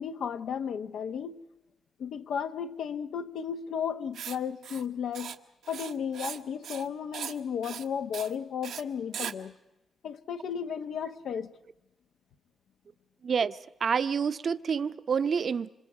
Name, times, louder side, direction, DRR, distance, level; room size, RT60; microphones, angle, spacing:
voice 1, 0.0-1.5 2.0-5.4 5.7-9.5 10.0-11.5, left 7 dB, 75° left, 0.9 m, -34 dB
Writing, 4.1-4.4 4.6-4.8 5.1-5.4 5.6-6.4 6.6-6.9 7.1-7.4 7.6-7.8 8.1-8.3 8.6-8.8 9.1-9.3, right 8 dB, 85° right, 1.1 m, -38 dB
voice 2, 13.2-15.7, right 6 dB, 45° right, 0.7 m, -28 dB
27.5 x 26.5 x 4.8 m
cardioid pair, 130°, 0 cm